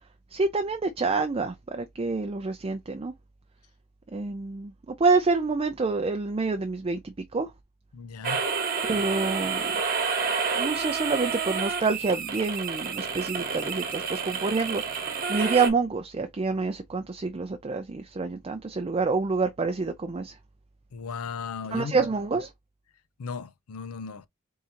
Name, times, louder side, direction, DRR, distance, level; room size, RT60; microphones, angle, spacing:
voice 1, 0.3-3.1 4.1-7.5 8.8-9.6 10.5-15.0 15.3-20.4 21.7-22.5, right 4 dB, 25° right, 0.4 m, -27 dB
voice 2, 7.9-8.4 20.9-22.0 23.2-24.3, left 5 dB, 80° left, 0.5 m, -36 dB
sound 1, 8.2-15.7, right 5 dB, 45° right, 1.1 m, -29 dB
3.7 x 2.8 x 4.2 m
head